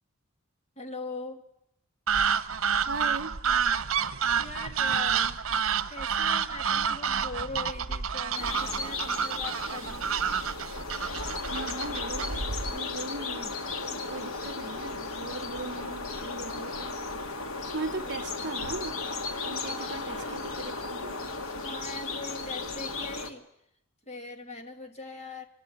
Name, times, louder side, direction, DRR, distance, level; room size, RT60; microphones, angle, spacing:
voice 1, 0.8-1.4 4.4-5.4 5.9-10.1 19.4-20.4 21.6-23.5 24.1-25.5, left 2 dB, 30° left, 2.6 m, -41 dB
sound 1, 2.1-12.8, right 7 dB, 80° right, 1.0 m, -29 dB
voice 2, 2.9-3.4 11.5-12.4 12.7-13.6 13.9-17.0 17.7-19.0 19.4-21.3, right 3 dB, 55° right, 1.0 m, -38 dB
sound 2, 8.3-23.3, left 3 dB, 85° left, 2.2 m, -35 dB
26.0 x 21.5 x 9.8 m
head